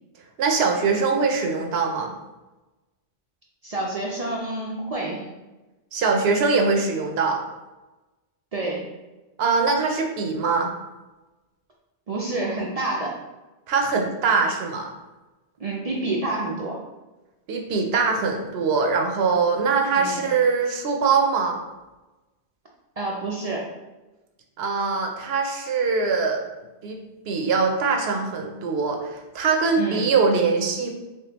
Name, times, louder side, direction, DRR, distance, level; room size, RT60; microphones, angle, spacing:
voice 1, 0.4-2.1 5.9-7.4 9.4-10.7 13.7-14.9 17.5-21.6 24.6-26.4 26.8-27.0 27.3-30.9, right 4 dB, 70° right, 2 dB, 0.8 m, -22 dB
voice 2, 3.6-5.3 8.5-8.9 12.1-13.2 15.6-16.8 19.9-20.2 23.0-23.7 29.7-30.0, right 2 dB, 50° right, -3 dB, 0.5 m, -28 dB
3.5 x 3.4 x 2.9 m, 1.1 s
omnidirectional pair, 1.1 m